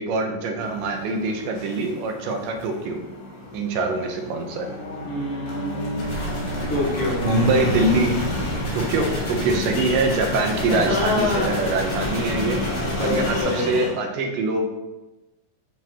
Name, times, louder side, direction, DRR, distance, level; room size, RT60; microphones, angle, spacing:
voice 1, 0.0-3.0 3.5-4.7 7.2-8.2 8.7-12.6 13.0-14.7, right 2 dB, 80° right, 4 dB, 2.4 m, -24 dB
sound 1, 0.6-13.9, left 2 dB, 85° left, 3.3 m, -32 dB
Bowed string instrument, 4.3-9.0, right 2 dB, 20° left, 2.0 m, -34 dB
voice 2, 5.1-6.1 6.7-7.2 9.4-9.6 10.7-11.5 13.0-13.7, left 2 dB, 55° left, -6 dB, 1.8 m, -26 dB
sound 2, 6.0-13.4, equal, 35° left, 1.9 m, -31 dB
11.0 x 3.9 x 2.8 m, 1.1 s
omnidirectional pair, 3.8 m